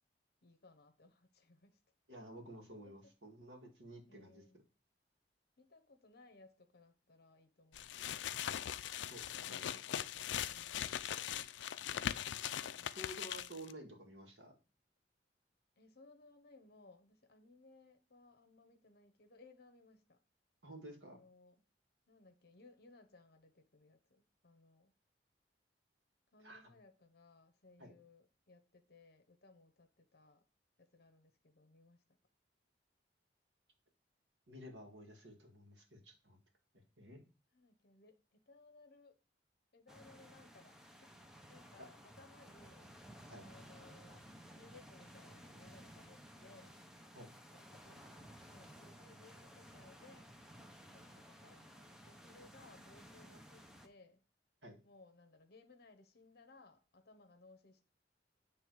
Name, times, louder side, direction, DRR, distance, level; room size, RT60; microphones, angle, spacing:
voice 1, 0.4-1.8 4.1-4.6 5.6-8.5 9.4-9.6 10.4-11.1 12.7-13.0 15.8-20.2 21.0-21.5 22.1-24.9 26.3-30.4 30.8-32.0 37.5-39.2 39.7-41.1 41.5-42.9 43.4-46.8 47.5-50.3 50.9-54.2 54.8-57.8, left 3 dB, 60° left, 0.9 m, -63 dB
voice 2, 2.1-4.4 9.1-9.8 12.1-12.2 12.6-14.6 20.6-21.2 26.4-26.6 27.8-27.9 34.5-36.4 36.7-37.2 41.8-41.9 43.3-43.4 47.1-47.3 54.6-54.8, equal, 85° right, 1.9 m, -52 dB
sound 1, 7.7-13.7, left 10 dB, 90° left, 0.4 m, -41 dB
sound 2, 39.9-53.9, equal, 5° right, 0.7 m, -57 dB
9.1 x 3.3 x 4.7 m
head